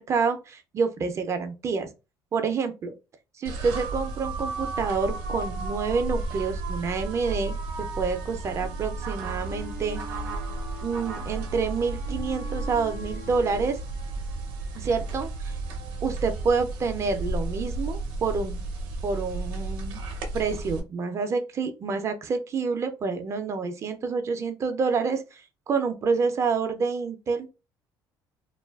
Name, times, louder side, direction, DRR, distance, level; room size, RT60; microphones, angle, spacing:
voice 1, 0.0-1.9 2.3-2.9 3.4-7.6 8.0-10.0 10.8-13.8 14.7-15.6 16.0-18.6 19.0-20.0 20.3-25.4 25.7-27.5, right 5 dB, 40° right, 0.4 m, -28 dB
sound 1, 3.4-20.8, right 3 dB, 90° right, 0.5 m, -33 dB
sound 2, 8.6-13.8, left 4 dB, 70° left, 0.5 m, -45 dB
2.6 x 2.3 x 2.2 m
cardioid pair, 115°, 8 cm